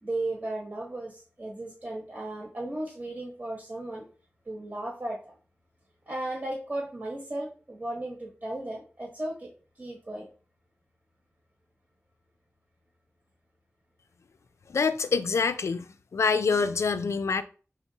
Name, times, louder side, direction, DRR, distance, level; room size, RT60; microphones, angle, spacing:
voice 1, 0.0-4.1 4.4-5.2 6.1-10.3, right 1 dB, 40° right, 1.1 m, -35 dB
voice 2, 14.7-15.9 16.1-17.4, left 5 dB, 85° left, 0.3 m, -25 dB
4.6 x 3.7 x 2.8 m
wide cardioid pair, 70°, 5 cm